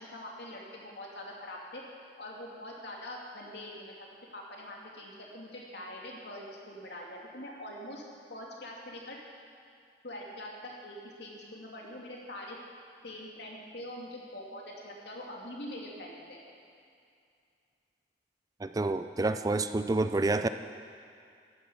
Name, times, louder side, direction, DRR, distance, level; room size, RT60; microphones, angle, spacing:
voice 1, 0.0-1.8 2.2-3.9 4.3-8.0 8.3-9.2 10.0-12.6 13.0-16.4, left 1 dB, 70° left, -2 dB, 2.6 m, -43 dB
voice 2, 18.6-20.5, right 2 dB, 20° right, 10 dB, 0.4 m, -28 dB
13.0 x 11.0 x 7.0 m, 2.4 s
head